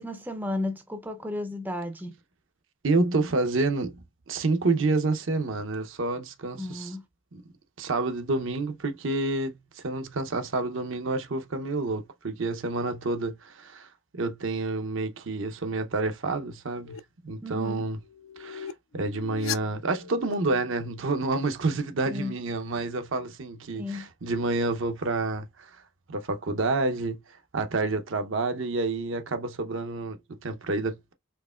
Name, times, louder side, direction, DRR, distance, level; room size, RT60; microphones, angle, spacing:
voice 1, 0.0-2.1 6.6-7.0 17.4-17.9 22.1-22.3 23.7-24.1, left 2 dB, 10° right, 0.4 m, -33 dB
voice 2, 2.8-4.0 4.3-6.9 7.3-7.4 7.8-13.9 14.1-17.0 17.2-18.0 18.4-25.7 26.1-27.2 27.5-31.1, right 3 dB, 70° right, 0.7 m, -29 dB
sound 1, 16.9-17.0 18.0-20.3, left 10 dB, 80° left, 0.4 m, -38 dB
4.6 x 2.8 x 2.3 m
head